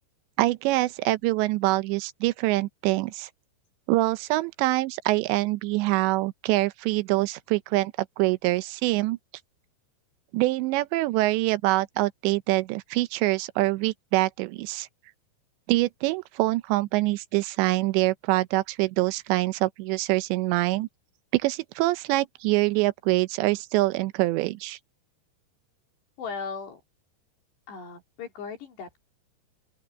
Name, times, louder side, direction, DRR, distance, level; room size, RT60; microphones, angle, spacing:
voice 1, 0.4-3.3 3.9-9.2 10.3-14.9 15.7-20.9 21.3-24.8, right 19 dB, 85° right, 3.0 m, -25 dB
voice 2, 26.2-26.8 27.7-29.0, left 5 dB, 70° left, 5.7 m, -37 dB
open air
omnidirectional pair, 5.0 m